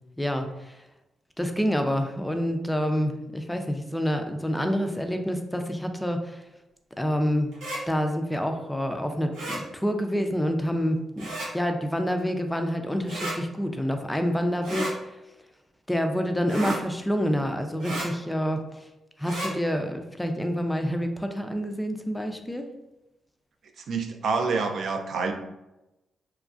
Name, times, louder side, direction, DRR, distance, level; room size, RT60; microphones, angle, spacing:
voice 1, 0.2-0.8 1.4-6.4 7.0-7.5 7.9-15.2 15.9-18.9 19.2-22.7, equal, 5° left, 5 dB, 0.4 m, -27 dB
sound 1, 7.5-7.8 9.3-9.6 11.2-11.5 13.1-13.4 14.6-14.9 16.5-16.8 17.8-18.1 19.2-19.5, right 1 dB, 90° right, 0.8 m, -32 dB
voice 2, 23.8-25.3, right 4 dB, 70° right, 5 dB, 0.3 m, -27 dB
3.0 x 2.4 x 2.4 m, 0.96 s
cardioid pair, 70°, 0 cm